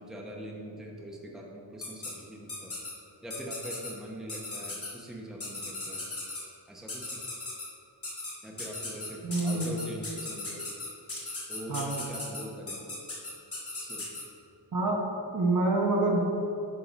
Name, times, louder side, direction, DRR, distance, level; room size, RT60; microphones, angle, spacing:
voice 1, 0.0-2.8 3.2-6.0 6.7-7.2 8.4-10.7 11.5-12.9 13.7-14.1, equal, ahead, -2 dB, 0.8 m, -42 dB
sound 1, 1.8-2.1 2.5-2.9 3.3-3.9 4.3-4.9 5.4-6.4 6.9-7.7 8.0-8.3 8.6-14.2, left 3 dB, 30° left, 1.7 m, -37 dB
voice 2, 9.2-9.8 11.7-11.9 14.7-15.0 15.3-16.2, right 2 dB, 45° right, 0 dB, 1.0 m, -26 dB
11.0 x 3.8 x 4.0 m, 2.7 s
wide cardioid pair, 115°, 43 cm